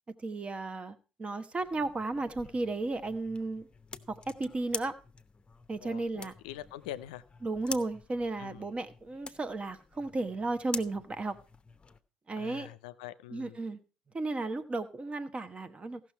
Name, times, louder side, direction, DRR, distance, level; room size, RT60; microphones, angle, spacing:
voice 1, 0.2-3.7 4.1-4.9 5.7-6.3 7.4-11.4 12.3-12.7 13.3-13.8 14.1-16.0, right 2 dB, 30° right, 1.1 m, -34 dB
sound 1, 1.6-12.0, left 4 dB, 25° left, 0.8 m, -47 dB
voice 2, 5.8-7.2 8.4-8.7 12.4-13.6, left 13 dB, 80° left, 0.5 m, -44 dB
15.5 x 6.2 x 4.5 m
hypercardioid pair, 60°, 4 cm